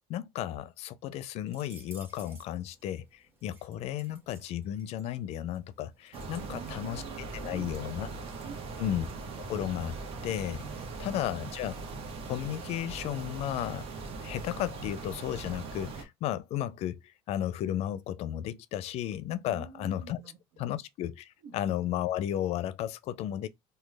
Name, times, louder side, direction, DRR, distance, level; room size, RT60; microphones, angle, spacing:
voice 1, 0.1-8.1 8.8-9.1 9.4-10.0 10.2-10.6 11.0-11.8 12.3-13.9 14.2-20.2 20.6-23.5, left 11 dB, 65° left, 0.4 m, -34 dB
sound 1, 1.5-11.9, right 2 dB, 20° right, 1.7 m, -60 dB
sound 2, 6.1-16.0, right 3 dB, 55° right, 1.0 m, -40 dB
voice 2, 6.4-8.8 10.7-11.6 19.4-20.8 21.4-21.6, right 7 dB, 80° right, 0.9 m, -49 dB
3.0 x 2.2 x 3.3 m
supercardioid pair, 100°, 12 cm